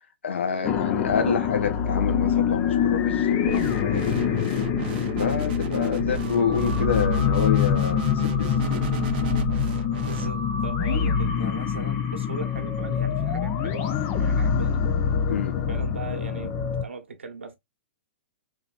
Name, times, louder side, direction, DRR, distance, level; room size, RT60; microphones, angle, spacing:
voice 1, 0.2-4.7 5.2-8.9 15.3-15.5, left 6 dB, 70° left, 1.0 m, -28 dB
sound 1, 0.6-16.8, left 8 dB, 35° left, 0.6 m, -25 dB
voice 2, 1.0-1.6 5.7-5.9 10.0-14.9 15.6-17.5, right 5 dB, 75° right, 1.2 m, -39 dB
sound 2, 3.4-10.3, right 6 dB, 50° right, 0.7 m, -33 dB
3.9 x 3.0 x 2.5 m
figure-of-eight pair, 115°, 7 cm